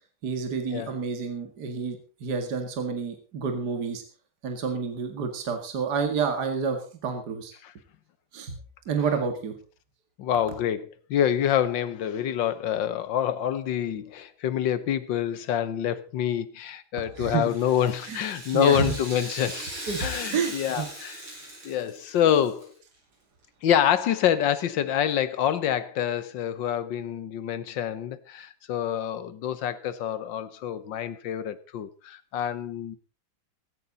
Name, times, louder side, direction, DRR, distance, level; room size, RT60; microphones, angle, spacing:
voice 1, 0.2-4.0 4.4-7.5 8.3-8.6 8.9-9.6 17.0-17.5 18.1-18.2 18.5-18.9 19.9-20.9, right 5 dB, 50° right, 2.5 m, -29 dB
voice 2, 10.2-19.7 20.0-21.1 21.6-22.7 23.6-33.0, left 10 dB, 65° left, 1.6 m, -26 dB
Rattle (instrument), 17.4-22.6 22.9-23.0 23.9-24.0, right 1 dB, 75° right, 8.2 m, -39 dB
16.0 x 14.0 x 3.9 m
omnidirectional pair, 2.3 m